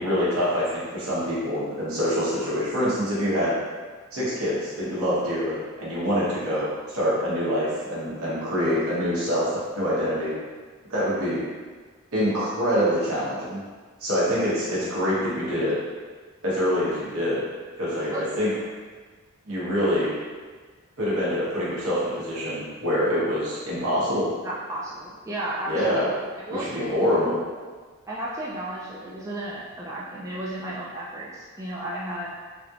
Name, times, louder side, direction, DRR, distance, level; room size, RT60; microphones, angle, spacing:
voice 1, 0.0-3.5 4.1-10.3 10.9-11.4 12.1-13.6 14.0-15.8 16.4-17.4 17.8-18.5 19.5-20.1 21.0-24.3 25.7-26.1 26.6-27.4, equal, 70° right, -8 dB, 1.0 m, -25 dB
voice 2, 18.1-18.4 24.4-27.0 28.1-32.3, right 1 dB, 15° right, -7 dB, 0.3 m, -34 dB
3.4 x 2.7 x 2.4 m, 1.5 s
head